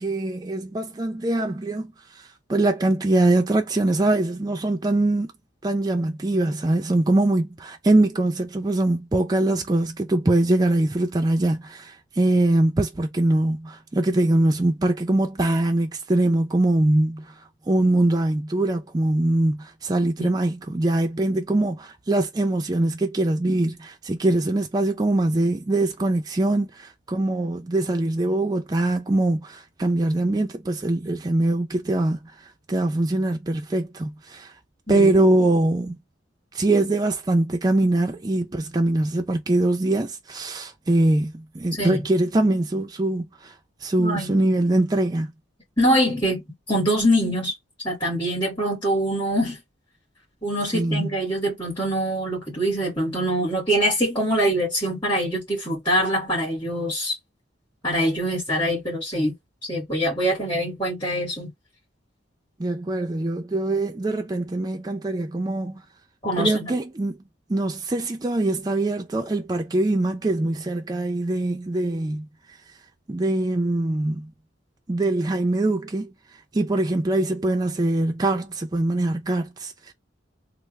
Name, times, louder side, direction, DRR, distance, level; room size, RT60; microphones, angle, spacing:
voice 1, 0.0-5.3 5.6-17.3 17.7-34.5 34.9-36.0 36.5-43.5 43.8-45.3 50.7-51.1 62.6-65.8 66.4-67.2 67.5-72.3 73.1-74.3 74.9-76.1 76.5-79.9, right 2 dB, 20° right, 0.4 m, -23 dB
voice 2, 41.7-42.0 44.0-44.3 45.8-46.4 46.7-47.5 47.8-49.6 50.4-57.2 57.8-59.3 59.7-61.5 66.2-66.7, equal, 20° left, 2.1 m, -24 dB
3.4 x 2.0 x 3.1 m
head